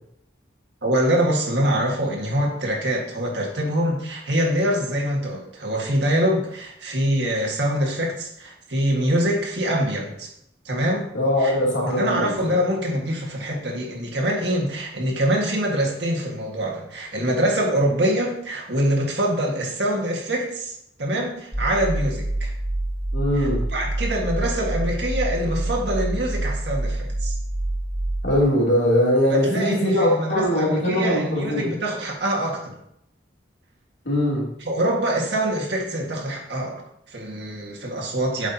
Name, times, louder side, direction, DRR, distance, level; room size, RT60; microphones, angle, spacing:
voice 1, 0.8-10.3 10.6-11.1 11.4-11.5 11.9-22.5 23.3-27.4 29.3-32.8 34.6-38.5, right 1 dB, 70° right, -1 dB, 1.7 m, -24 dB
voice 2, 11.1-12.6 23.1-23.7 28.2-31.7 34.0-34.5, left 1 dB, 80° left, -5 dB, 2.9 m, -21 dB
sound 1, 21.5-28.3, right 1 dB, 5° right, 1.8 m, -26 dB
8.1 x 6.3 x 2.8 m, 0.74 s
head